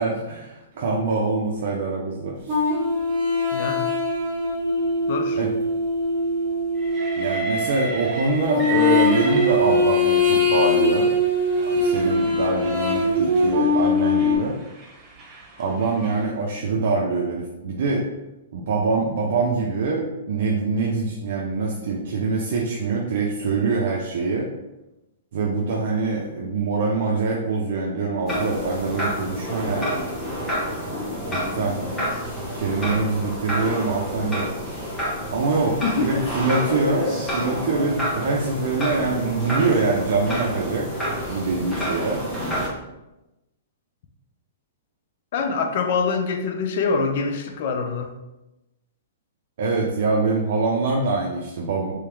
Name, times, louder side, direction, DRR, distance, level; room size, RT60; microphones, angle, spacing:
voice 1, 0.0-2.4 5.4-5.5 7.2-11.1 11.6-14.5 15.6-18.0 18.5-24.5 25.3-30.1 31.3-31.8 32.4-34.5 35.3-40.9 41.3-42.2 49.6-51.9, right 3 dB, 65° right, -2 dB, 0.6 m, -24 dB
sound 1, 2.5-7.5 8.4-14.4, left 2 dB, 40° right, 1.5 m, -21 dB
voice 2, 3.5-3.9 5.1-5.4 35.8-36.3 45.3-48.1, left 4 dB, 55° left, 5 dB, 0.6 m, -24 dB
Train, 6.8-10.2 11.0-16.3, right 3 dB, 20° right, 0.9 m, -34 dB
sound 2, 28.3-42.7, equal, 10° left, 1.4 m, -29 dB
3.4 x 3.2 x 3.4 m, 0.97 s
hypercardioid pair, 140°, 0 cm